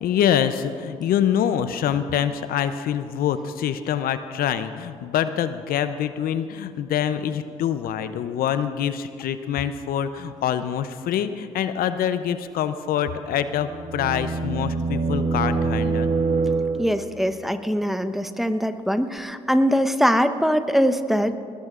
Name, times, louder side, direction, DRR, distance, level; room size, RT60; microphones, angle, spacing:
voice 1, 0.0-16.1, left 9 dB, 70° left, 11 dB, 0.6 m, -25 dB
sound 1, 13.3-17.2, right 4 dB, 50° right, 1.7 m, -25 dB
voice 2, 16.8-21.4, equal, ahead, 9 dB, 0.9 m, -22 dB
20.5 x 19.0 x 2.5 m, 2.3 s
hypercardioid pair, 50°, 16 cm